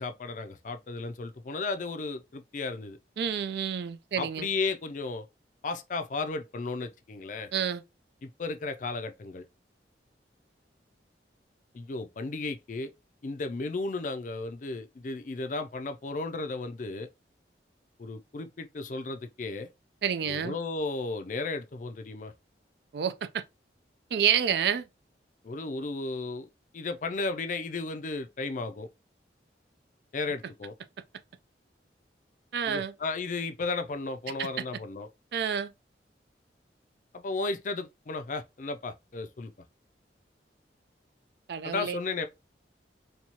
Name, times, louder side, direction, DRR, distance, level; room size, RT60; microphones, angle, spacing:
voice 1, 0.0-3.0 4.2-5.2 5.6-7.5 8.2-9.4 11.7-12.9 13.2-17.1 18.0-19.7 20.3-22.3 25.4-26.5 26.7-28.9 30.1-30.7 32.7-35.1 37.1-39.5 41.6-42.3, left 3 dB, 45° left, 0.4 m, -34 dB
voice 2, 3.2-4.5 7.5-7.8 20.0-20.5 22.9-23.4 24.1-24.9 32.5-32.9 34.4-34.5 35.3-35.7 41.5-42.0, right 8 dB, 65° right, 0.3 m, -28 dB
4.4 x 2.3 x 2.8 m
head